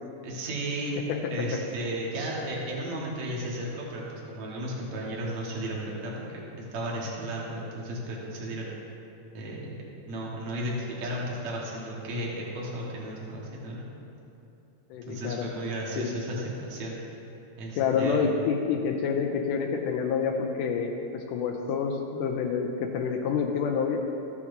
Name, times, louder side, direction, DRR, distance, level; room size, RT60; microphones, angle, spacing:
voice 1, 0.2-0.9 1.3-8.7 9.3-9.7 10.1-13.9 15.1-17.0 17.6-18.2, right 1 dB, 60° right, -4 dB, 2.6 m, -34 dB
voice 2, 14.9-15.4 16.0-16.1 17.8-24.0, left 6 dB, 80° left, 2 dB, 2.1 m, -28 dB
14.5 x 8.5 x 2.7 m, 2.8 s
omnidirectional pair, 3.8 m